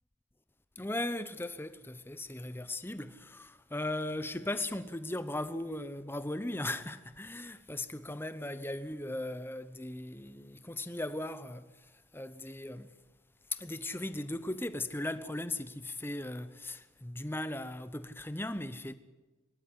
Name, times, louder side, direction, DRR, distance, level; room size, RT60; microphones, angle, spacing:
voice 1, 0.8-12.9 13.5-18.9, left 1 dB, 10° left, 0.8 m, -38 dB
23.0 x 12.0 x 9.8 m
head